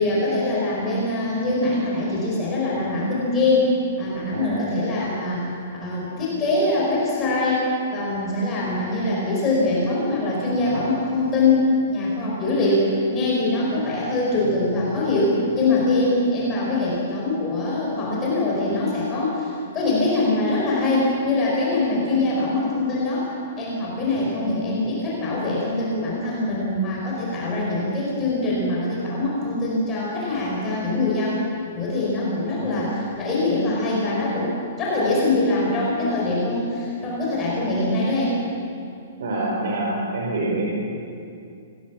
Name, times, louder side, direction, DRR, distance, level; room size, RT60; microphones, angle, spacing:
voice 1, 0.0-3.7 4.0-5.5 5.8-7.7 7.9-23.3 23.6-31.4 31.7-38.4, left 2 dB, 15° left, -5 dB, 5.0 m, -23 dB
voice 2, 4.3-4.7 32.6-33.0 39.2-40.7, right 2 dB, 60° right, -3 dB, 4.8 m, -26 dB
26.0 x 19.0 x 7.4 m, 2.5 s
hypercardioid pair, 175°, 0 cm